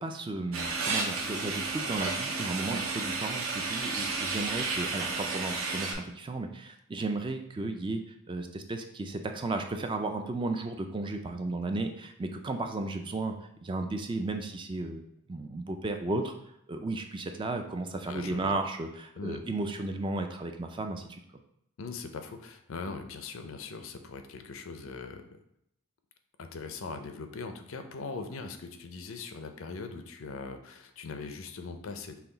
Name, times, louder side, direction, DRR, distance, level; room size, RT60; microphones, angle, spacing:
voice 1, 0.0-8.0 8.3-13.3 13.6-15.0 15.3-16.3 16.7-21.2, right 2 dB, 20° right, 5 dB, 0.3 m, -34 dB
sound 1, 0.5-5.9, right 3 dB, 65° right, 0.8 m, -32 dB
voice 2, 18.0-18.6 19.2-19.4 21.8-25.4 26.4-32.2, left 4 dB, 65° left, 7 dB, 0.5 m, -40 dB
5.7 x 2.3 x 3.8 m, 0.77 s
head